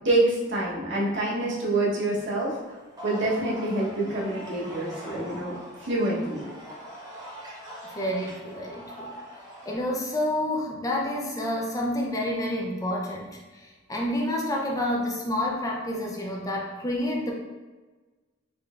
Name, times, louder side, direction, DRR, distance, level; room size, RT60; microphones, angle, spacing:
voice 1, 0.0-2.5 3.0-5.5 5.8-6.4, right 2 dB, 65° right, -5 dB, 1.0 m, -26 dB
sound 1, 2.0-9.8, equal, 20° right, 1.0 m, -42 dB
voice 2, 8.0-9.1 9.6-17.3, left 1 dB, 15° left, -2 dB, 0.4 m, -29 dB
3.7 x 3.2 x 2.4 m, 1.3 s
head